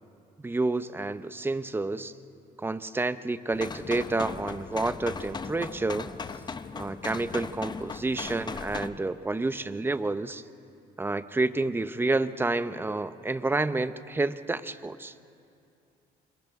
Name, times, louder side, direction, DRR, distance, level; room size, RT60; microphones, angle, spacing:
voice 1, 0.4-2.1 2.6-6.1 6.8-10.4 11.0-15.1, right 2 dB, 15° right, 13 dB, 0.7 m, -29 dB
sound 1, 3.5-8.9, left 5 dB, 25° left, 0.7 m, -38 dB
28.0 x 27.5 x 3.7 m, 2.6 s
cardioid pair, 110°, 17 cm